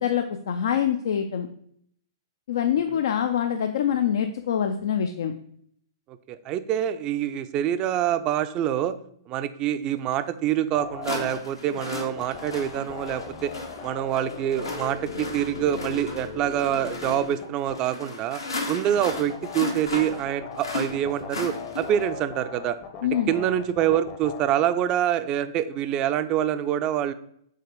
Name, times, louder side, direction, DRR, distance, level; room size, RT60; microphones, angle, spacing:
voice 1, 0.0-1.5 2.5-5.3 23.0-23.3, left 9 dB, 60° left, 7 dB, 0.4 m, -25 dB
voice 2, 6.1-9.0 9.3-13.5 13.8-18.4 18.7-22.8 23.3-27.1, right 11 dB, 30° right, 12 dB, 0.4 m, -26 dB
sound 1, 10.1-10.2 11.0-22.1, left 3 dB, 80° left, 1.2 m, -35 dB
sound 2, 10.7-11.4 11.8-17.8 19.0-24.4, left 6 dB, 40° left, 0.9 m, -39 dB
5.6 x 3.6 x 4.9 m, 0.67 s
figure-of-eight pair, 110°, 2 cm